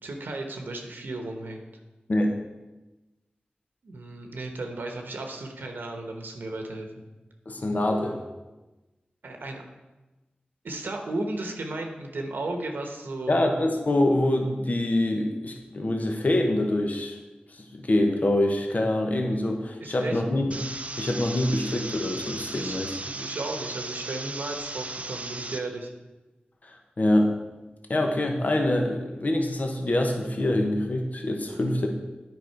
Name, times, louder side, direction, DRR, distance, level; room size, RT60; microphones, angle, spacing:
voice 1, 0.0-1.7 3.8-6.9 9.2-9.6 10.6-13.4 19.8-20.2 22.6-25.9 31.5-31.6, right 2 dB, 90° right, 3 dB, 1.0 m, -35 dB
voice 2, 7.5-8.2 13.3-17.2 17.7-20.5 21.0-23.0 26.6-27.3 27.9-31.9, left 1 dB, 50° left, 3 dB, 1.0 m, -25 dB
sound 1, 20.5-25.6, right 2 dB, 40° right, 0.6 m, -36 dB
9.3 x 5.1 x 4.6 m, 1.1 s
wide cardioid pair, 60°, 3 cm